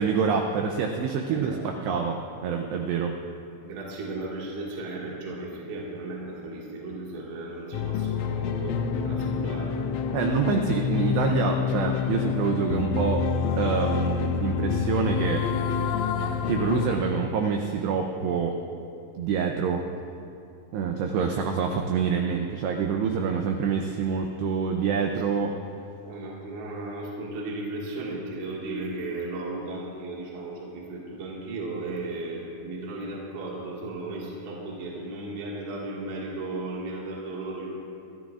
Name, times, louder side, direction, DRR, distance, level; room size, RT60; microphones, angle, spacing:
voice 1, 0.0-3.1 10.1-13.3 13.6-15.5 16.5-18.6 19.2-19.8 20.7-25.6, right 6 dB, 90° right, 3 dB, 2.4 m, -26 dB
voice 2, 1.3-1.7 3.6-8.8 9.0-9.7 25.4-25.5 26.0-37.7, right 2 dB, 70° right, -4 dB, 4.0 m, -35 dB
sound 1, 7.7-17.0, left 6 dB, 80° left, 2.9 m, -27 dB
25.0 x 13.5 x 2.4 m, 2.6 s
omnidirectional pair, 5.7 m